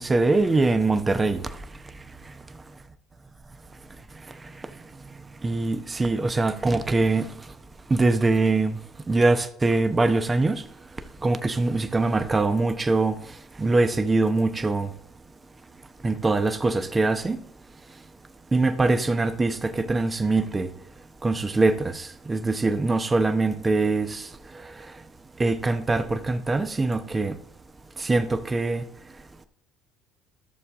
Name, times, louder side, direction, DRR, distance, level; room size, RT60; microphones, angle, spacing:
voice 1, 0.0-1.4 5.4-7.3 7.9-8.8 9.1-10.6 11.2-13.2 13.6-14.9 16.0-17.4 18.5-20.7 21.2-24.2 25.4-27.3 28.0-28.8, right 3 dB, 25° right, 0.9 m, -23 dB
13.5 x 6.8 x 3.7 m
hypercardioid pair, 60°, 0 cm